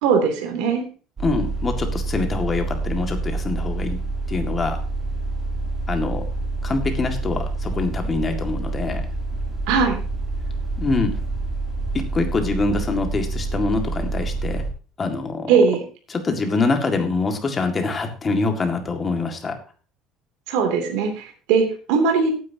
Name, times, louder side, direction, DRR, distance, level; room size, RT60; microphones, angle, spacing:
voice 1, 0.0-0.8 9.7-10.0 15.5-15.8 20.5-22.3, right 5 dB, 85° right, 4 dB, 2.8 m, -19 dB
voice 2, 1.2-4.0 4.3-4.8 5.9-6.2 6.6-9.0 10.8-11.1 11.9-14.6 15.0-15.5 16.1-19.6, left 3 dB, 20° left, 4 dB, 2.0 m, -24 dB
sound 1, 1.2-14.7, right 2 dB, 25° right, 2.9 m, -27 dB
17.0 x 9.6 x 2.9 m, 0.37 s
cardioid pair, 160°, 0 cm